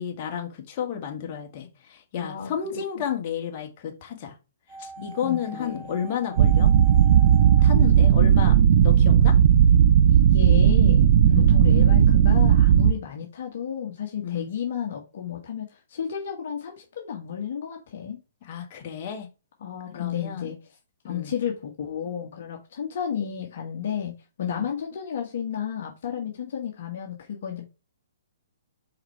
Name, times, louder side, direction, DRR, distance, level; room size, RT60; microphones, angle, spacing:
voice 1, 0.0-4.3 4.8-6.7 7.6-9.4 11.3-11.5 14.2-14.5 18.4-19.3 19.9-20.5 21.0-21.3 24.4-24.7, left 8 dB, 40° left, 1.8 m, -32 dB
sound 1, 4.7-8.8 9.0-9.1, right 3 dB, 30° right, 2.2 m, -43 dB
voice 2, 5.0-5.9 10.1-11.1 11.5-18.2 19.6-20.6 21.0-24.1 24.4-27.7, left 8 dB, 60° left, 1.4 m, -32 dB
sound 2, 6.4-12.9, right 9 dB, 50° right, 0.5 m, -16 dB
4.8 x 4.4 x 4.7 m
hypercardioid pair, 125°, 0 cm